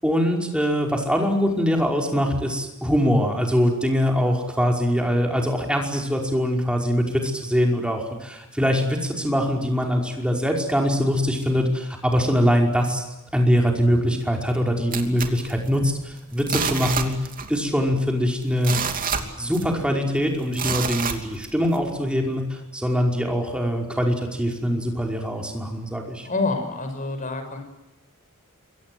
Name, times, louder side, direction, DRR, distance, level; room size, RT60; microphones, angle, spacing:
voice 1, 0.0-13.0 13.3-17.1 17.5-18.8 19.4-26.3, equal, 5° right, 1 dB, 5.2 m, -23 dB
sound 1, 14.9-16.0 16.4-17.6 17.9-18.0 18.4-19.9 20.5-21.8 22.3-22.4, right 6 dB, 40° right, 2.8 m, -28 dB
voice 2, 26.2-27.6, left 3 dB, 35° left, 6 dB, 6.1 m, -27 dB
27.5 x 24.0 x 7.9 m, 0.99 s
head